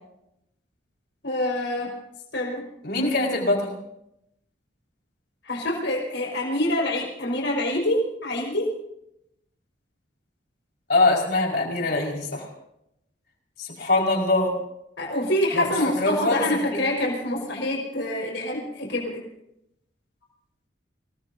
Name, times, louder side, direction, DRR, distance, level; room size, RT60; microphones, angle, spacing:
voice 1, 1.2-1.9 2.3-2.6 5.4-8.7 15.0-19.2, left 1 dB, 75° left, -1 dB, 5.2 m, -26 dB
voice 2, 2.8-3.8 10.9-12.5 13.6-14.5 15.5-15.7 16.0-16.5 16.7-16.8, left 2 dB, 55° left, -1 dB, 5.2 m, -23 dB
27.5 x 19.0 x 2.7 m, 0.79 s
head